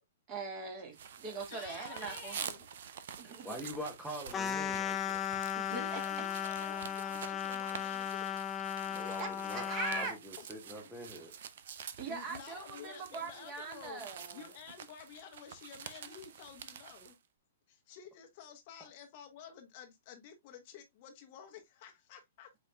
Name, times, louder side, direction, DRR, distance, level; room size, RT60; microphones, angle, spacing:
voice 1, 0.3-2.4 3.2-3.6 5.5-6.0 8.9-10.1 12.0-14.5, right 4 dB, 30° right, 1.8 m, -41 dB
sound 1, 0.9-17.2, right 8 dB, 60° right, 0.6 m, -48 dB
voice 2, 1.5-2.7 5.7-8.4 11.8-14.1 14.3-17.2 17.7-22.5, left 8 dB, 45° left, 1.1 m, -51 dB
voice 3, 3.3-5.3 8.9-11.4 18.8-18.9, equal, 5° right, 1.0 m, -45 dB
sound 2, 4.3-10.1, left 9 dB, 20° left, 0.4 m, -36 dB
8.0 x 2.8 x 2.3 m
hypercardioid pair, 120°, 0 cm